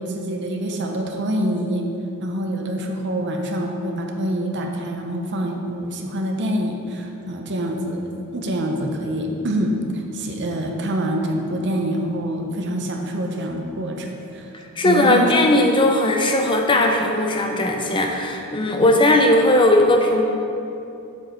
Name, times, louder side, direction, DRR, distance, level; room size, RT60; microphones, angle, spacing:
voice 1, 0.0-1.9 2.2-14.5 14.8-15.3 18.8-18.9, right 1 dB, 50° right, 2 dB, 0.7 m, -26 dB
voice 2, 14.8-20.2, left 1 dB, 20° left, 3 dB, 0.5 m, -18 dB
7.1 x 4.9 x 4.4 m, 2.7 s
head